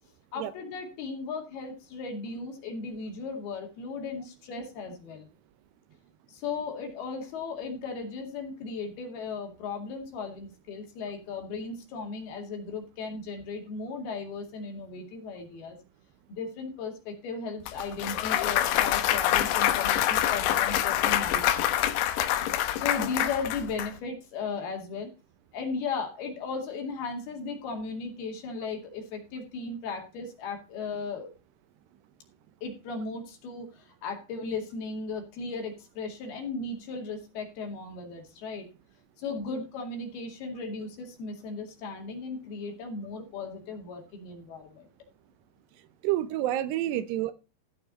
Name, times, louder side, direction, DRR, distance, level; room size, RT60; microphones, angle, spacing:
voice 1, 0.3-5.3 6.3-15.8 16.3-21.9 22.3-22.4 22.7-25.1 25.5-31.3 32.6-38.7 39.2-44.9, left 4 dB, 65° left, 4.1 m, -36 dB
Clapping / Cheering / Applause, 17.7-23.9, left 12 dB, 90° left, 3.2 m, -26 dB
voice 2, 46.0-47.3, right 13 dB, 80° right, 2.8 m, -28 dB
14.0 x 7.0 x 4.0 m
omnidirectional pair, 4.9 m